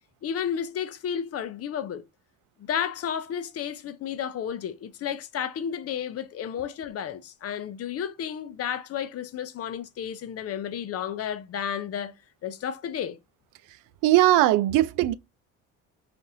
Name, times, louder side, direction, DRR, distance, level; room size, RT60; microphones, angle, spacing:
voice 1, 0.2-2.0 2.6-12.1 12.4-13.2, left 8 dB, 50° left, 0.6 m, -32 dB
voice 2, 14.0-15.1, right 15 dB, 75° right, 0.5 m, -19 dB
3.9 x 2.5 x 2.7 m
supercardioid pair, 85°, 32 cm